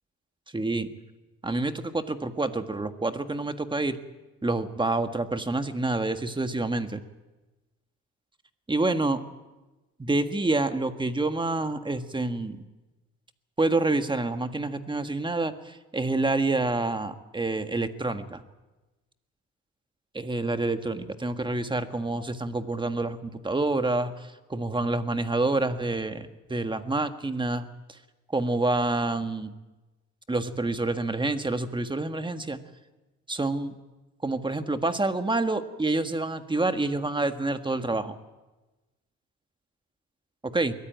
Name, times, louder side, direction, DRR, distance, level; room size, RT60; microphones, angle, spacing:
voice 1, 0.5-0.9 1.4-4.0 4.4-7.0 8.7-9.2 10.0-12.6 13.6-18.4 20.1-28.0 28.3-29.5 30.3-32.6 33.3-33.7 34.2-38.1 40.5-40.7, right 2 dB, 15° right, 9 dB, 1.5 m, -27 dB
22.0 x 14.0 x 9.2 m, 1.1 s
cardioid pair, 90°, 30 cm